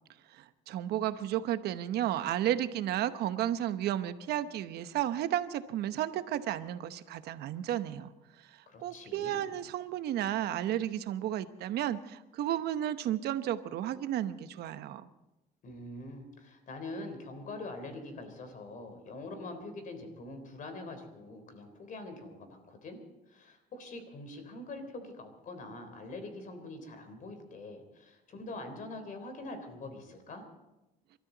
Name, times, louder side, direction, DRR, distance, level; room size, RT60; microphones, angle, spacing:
voice 1, 0.3-8.1 8.4-15.1, right 12 dB, 75° right, 11 dB, 1.0 m, -33 dB
voice 2, 8.7-9.5 15.6-23.0 23.3-30.4, left 2 dB, 50° left, 7 dB, 3.7 m, -44 dB
27.5 x 13.0 x 4.0 m, 0.98 s
cardioid pair, 110°, 17 cm